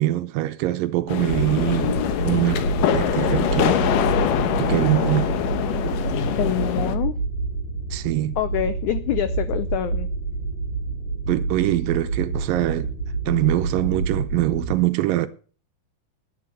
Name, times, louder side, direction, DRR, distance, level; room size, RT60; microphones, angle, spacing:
voice 1, 0.0-1.9 2.2-3.9 4.6-5.3 7.9-8.4 11.3-12.9 13.3-15.3, right 16 dB, 75° right, 2.3 m, -23 dB
sound 1, 1.1-7.0, left 10 dB, 70° left, 2.5 m, -24 dB
sound 2, 1.1-6.8, left 2 dB, 35° left, 3.3 m, -43 dB
sound 3, 1.3-14.7, right 3 dB, 50° left, 4.0 m, -28 dB
voice 2, 6.4-7.1 8.4-10.1, left 12 dB, 90° left, 1.6 m, -25 dB
10.5 x 9.4 x 6.7 m
omnidirectional pair, 4.3 m